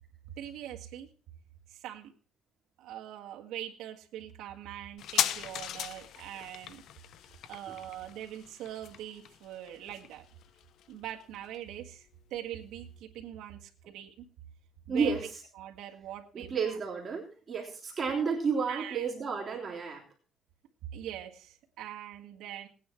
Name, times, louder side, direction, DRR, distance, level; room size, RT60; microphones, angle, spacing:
voice 1, 0.4-1.1 1.7-2.1 2.8-6.8 7.5-10.2 10.9-14.3 14.9-15.1 15.6-16.8 18.7-19.0 20.9-22.7, right 11 dB, 85° right, 2 dB, 1.8 m, -42 dB
sound 1, 5.0-12.1 12.3-12.4, left 10 dB, 65° left, 0.7 m, -38 dB
voice 2, 14.9-15.4 16.3-20.0, right 5 dB, 30° right, -1 dB, 3.2 m, -31 dB
19.0 x 9.3 x 4.5 m, 0.38 s
cardioid pair, 145°, 0 cm